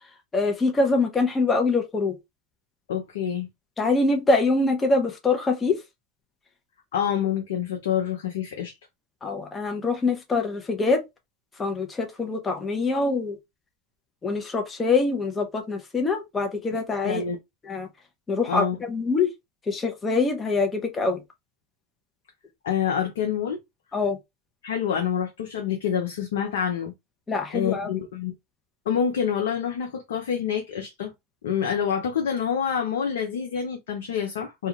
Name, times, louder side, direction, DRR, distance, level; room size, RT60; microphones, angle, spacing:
voice 1, 0.3-2.2 3.8-5.8 9.2-11.0 11.6-13.4 14.2-17.2 17.6-17.9 18.3-19.3 19.7-21.2 23.9-24.2 27.3-27.9, left 3 dB, 20° left, 0.7 m, -24 dB
voice 2, 2.9-3.5 6.9-8.8 17.0-17.4 18.5-18.8 22.6-23.6 24.6-26.9 27.5-28.3 28.9-31.1 31.4-34.7, left 8 dB, 75° left, 0.5 m, -27 dB
2.4 x 2.3 x 2.9 m
hypercardioid pair, 90°, 0 cm